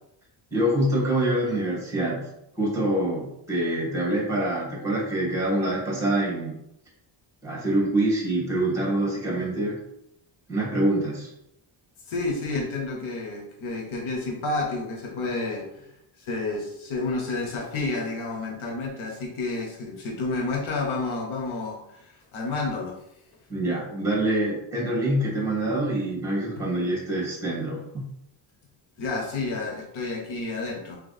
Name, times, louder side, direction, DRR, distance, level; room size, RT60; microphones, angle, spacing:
voice 1, 0.5-2.3 2.6-6.5 7.4-9.8 10.5-11.3 23.5-28.0, right 1 dB, 5° right, -4 dB, 1.6 m, -25 dB
voice 2, 12.1-15.9 16.2-23.0 29.0-31.0, left 3 dB, 85° left, 0 dB, 1.0 m, -30 dB
3.4 x 3.2 x 4.0 m, 0.81 s
cardioid pair, 95°, 47 cm